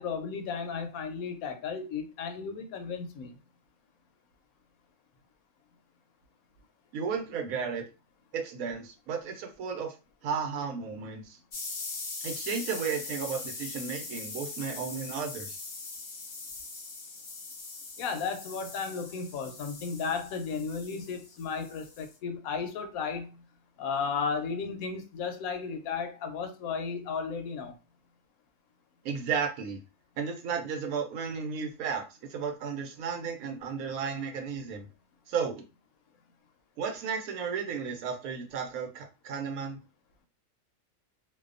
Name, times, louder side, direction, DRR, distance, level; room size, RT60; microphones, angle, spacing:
voice 1, 0.0-3.3 18.0-23.3 23.8-27.7, left 5 dB, 80° left, 1.0 m, -34 dB
voice 2, 6.9-7.8 8.3-9.9 10.2-11.4 12.2-15.6 29.0-29.8 30.2-34.8 35.3-35.7 36.8-39.8, right 6 dB, 80° right, 1.1 m, -34 dB
sound 1, 11.5-22.1, left 3 dB, 55° left, 0.5 m, -41 dB
2.6 x 2.2 x 2.4 m
omnidirectional pair, 1.5 m